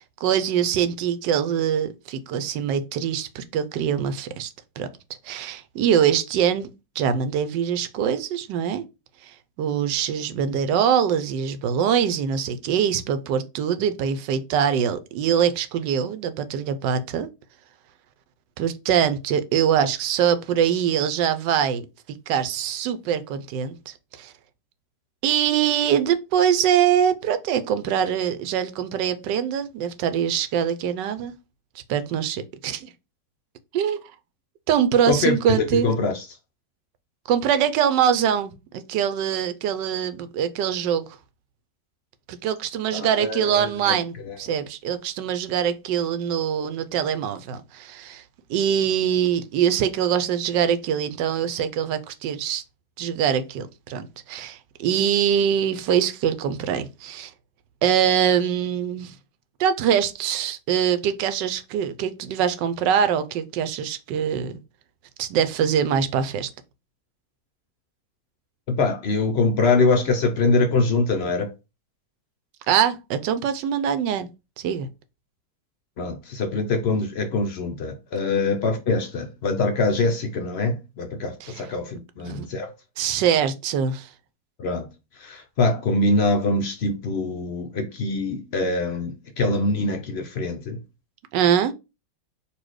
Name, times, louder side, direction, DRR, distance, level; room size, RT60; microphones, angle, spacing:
voice 1, 0.0-4.9 5.2-6.7 7.0-8.8 9.2-17.3 18.6-24.3 25.2-31.3 31.9-32.9 33.7-34.1 34.7-35.9 37.3-41.1 42.3-48.2 48.5-52.6 53.0-57.3 57.8-59.2 59.6-64.5 65.2-66.5 72.7-74.3 74.6-74.9 81.4-81.7 82.2-82.5 83.0-84.1 91.3-91.7, right 8 dB, 90° right, 1.3 m, -23 dB
voice 2, 35.1-36.2 42.9-44.0 44.5-44.6 68.7-71.5 76.0-82.7 84.6-84.9 85.2-90.8, left 3 dB, 75° left, 0.5 m, -24 dB
4.2 x 2.7 x 4.6 m
omnidirectional pair, 1.9 m